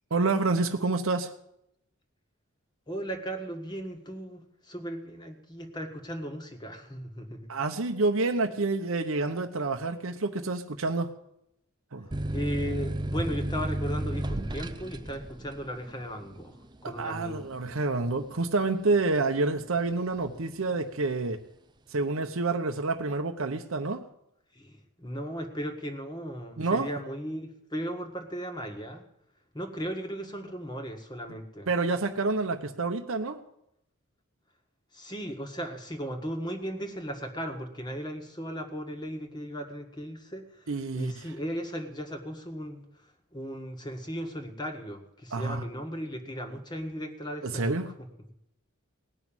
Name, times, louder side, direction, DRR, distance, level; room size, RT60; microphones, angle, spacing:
voice 1, 0.1-1.3 7.5-11.1 11.9-12.1 17.0-21.4 21.9-24.1 26.6-26.9 31.7-33.4 40.7-41.3 45.3-45.6 47.4-47.9, right 3 dB, 65° right, 5 dB, 0.9 m, -28 dB
voice 2, 2.9-7.5 12.3-16.6 16.8-17.4 24.5-29.0 29.5-31.7 34.9-42.8 43.3-47.9, equal, 20° left, 5 dB, 1.6 m, -36 dB
sound 1, 12.1-19.4 19.8-20.5, right 1 dB, 20° right, 0.6 m, -33 dB
18.0 x 6.2 x 8.9 m, 0.79 s
head